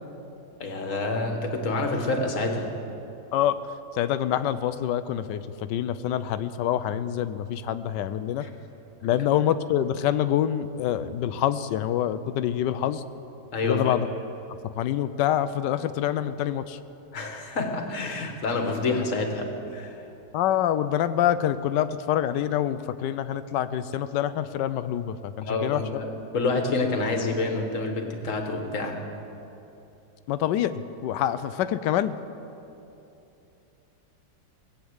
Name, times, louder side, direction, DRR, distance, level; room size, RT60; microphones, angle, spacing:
voice 1, 0.6-2.7 8.4-8.5 13.5-14.0 17.1-20.0 25.4-29.0, left 3 dB, 50° left, 4 dB, 1.7 m, -28 dB
voice 2, 3.9-8.5 9.0-13.0 13.6-14.1 14.6-16.8 20.3-26.0 30.3-32.1, left 11 dB, 85° left, 13 dB, 1.2 m, -26 dB
18.5 x 8.4 x 7.9 m, 2.9 s
omnidirectional pair, 1.8 m